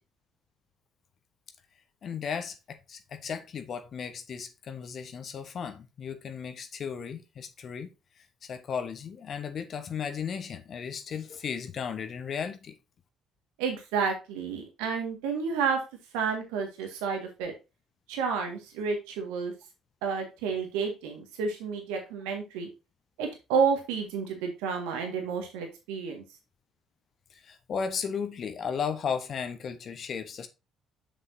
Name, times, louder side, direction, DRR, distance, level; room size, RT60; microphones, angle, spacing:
voice 1, 2.0-7.9 8.4-12.7 27.3-30.5, left 6 dB, 50° left, 1.0 m, -35 dB
voice 2, 13.6-15.8 16.1-17.5 18.1-19.5 20.0-22.7 23.2-26.2, right 5 dB, 70° right, 1.9 m, -30 dB
7.4 x 6.8 x 2.7 m
figure-of-eight pair, 50°, 0 cm